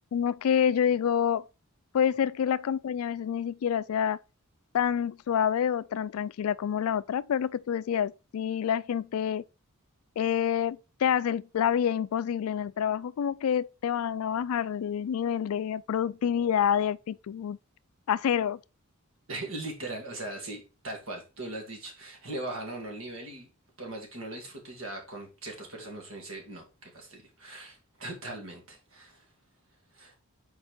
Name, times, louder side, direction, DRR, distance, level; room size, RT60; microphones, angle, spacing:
voice 1, 0.1-1.5 1.9-4.2 4.7-9.4 10.2-17.6 18.1-18.6, left 8 dB, 75° left, 0.3 m, -27 dB
voice 2, 19.3-23.5 23.8-29.2 29.9-30.2, right 2 dB, 70° right, 2.2 m, -40 dB
4.7 x 4.3 x 4.6 m
head